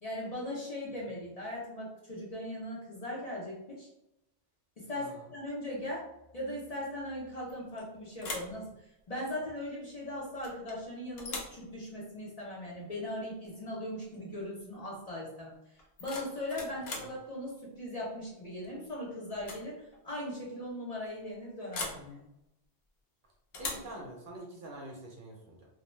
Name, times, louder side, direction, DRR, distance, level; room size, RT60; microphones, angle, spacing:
voice 1, 0.0-3.9 4.8-6.1 6.3-8.7 9.1-15.5 16.0-22.3, left 1 dB, 45° left, -4 dB, 0.6 m, -39 dB
sound 1, 7.5-7.8 8.2-8.6 10.4-10.8 11.2-11.6 13.4-13.6 14.0-14.3 15.8-17.2 18.6-18.9 19.3-19.7 19.9-20.0 21.7-22.1 23.5-23.9, left 3 dB, 70° left, 0.9 m, -40 dB
voice 2, 23.6-25.7, right 1 dB, 60° right, -1 dB, 0.7 m, -46 dB
2.5 x 2.1 x 3.1 m, 0.84 s
omnidirectional pair, 1.1 m